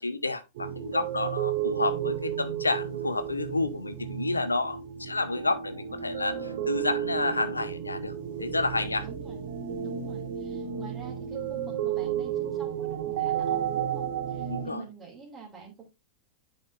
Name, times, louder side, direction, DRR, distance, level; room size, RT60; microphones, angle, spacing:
voice 1, 0.0-8.1 8.4-9.0 14.5-14.8, left 3 dB, 80° left, 0.6 m, -30 dB
sound 1, 0.6-14.7, right 9 dB, 55° right, 0.9 m, -32 dB
voice 2, 9.0-9.4 9.8-15.8, right 6 dB, 20° right, 2.7 m, -47 dB
10.0 x 5.1 x 2.5 m
figure-of-eight pair, 90°, 0 cm